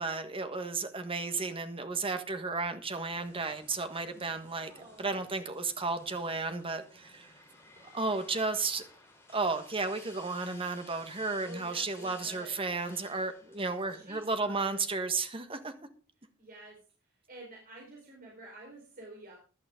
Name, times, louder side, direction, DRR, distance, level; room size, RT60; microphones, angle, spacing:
voice 1, 0.0-4.7 5.0-7.3 7.8-8.8 9.3-15.7, right 3 dB, 25° right, 8 dB, 1.5 m, -33 dB
sound 1, 2.9-14.9, left 2 dB, 10° left, 3.8 m, -56 dB
voice 2, 4.6-5.2 11.4-12.6 13.9-14.8 16.4-16.8 17.3-19.4, right 1 dB, 45° right, -2 dB, 4.3 m, -50 dB
15.5 x 11.0 x 3.7 m, 0.37 s
head